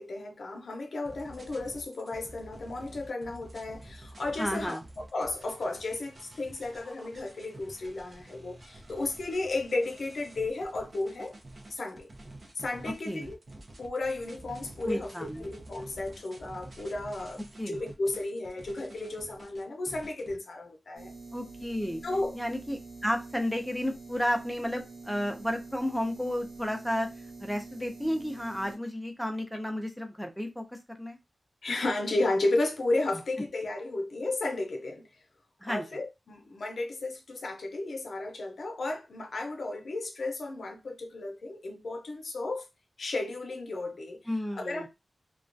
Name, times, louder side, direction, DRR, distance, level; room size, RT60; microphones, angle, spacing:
voice 1, 0.0-11.3 11.7-12.1 12.6-13.4 13.8-17.4 17.7-21.1 22.0-22.3 31.6-35.1 35.7-42.7 43.0-44.2 44.5-44.9, left 2 dB, 70° left, 0.5 m, -33 dB
sound 1, 1.0-20.4, right 1 dB, 45° right, 0.6 m, -49 dB
voice 2, 4.4-4.8 13.1-13.3 14.8-15.5 17.6-17.8 21.3-22.0 22.3-27.1 27.4-31.2 35.6-35.8 44.3-44.9, equal, ahead, 0.5 m, -32 dB
sound 2, 20.9-28.7, right 3 dB, 75° right, 1.1 m, -46 dB
2.3 x 2.2 x 2.5 m
wide cardioid pair, 115°, 0 cm